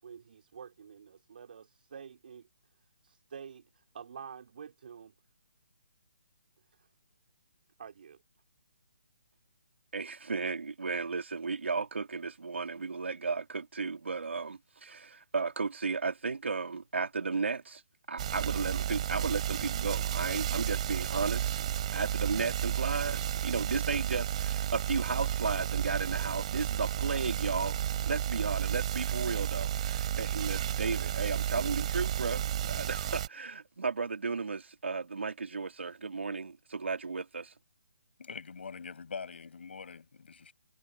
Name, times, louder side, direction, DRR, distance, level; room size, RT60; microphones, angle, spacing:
voice 1, 0.0-2.5 3.0-5.1 6.8-6.9 7.8-8.2, right 7 dB, 50° right, 5.0 m, -48 dB
voice 2, 9.9-17.8 18.1-21.6 21.9-27.8 28.0-37.5, right 4 dB, 85° right, 3.6 m, -34 dB
sound 1, 18.2-33.3, right 11 dB, 35° right, 4.2 m, -32 dB
voice 3, 38.2-40.5, left 5 dB, 65° left, 7.9 m, -43 dB
hypercardioid pair, 165°, 6 cm